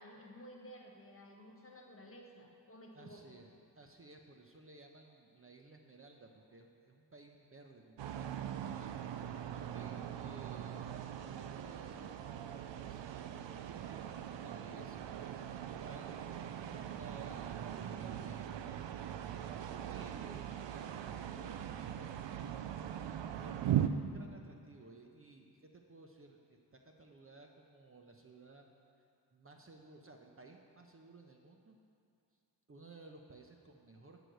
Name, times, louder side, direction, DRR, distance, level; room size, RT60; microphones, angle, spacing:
voice 1, 0.0-3.2, equal, 30° left, 1 dB, 1.7 m, -54 dB
voice 2, 2.9-10.9 11.2-16.5 16.8-19.1 19.6-23.0 23.4-28.7 29.3-31.8 32.7-34.2, right 3 dB, 30° right, 2 dB, 0.9 m, -57 dB
sound 1, 8.0-23.9, right 10 dB, 75° right, 0.7 m, -40 dB
12.0 x 5.0 x 8.0 m, 2.4 s
cardioid pair, 80°, 44 cm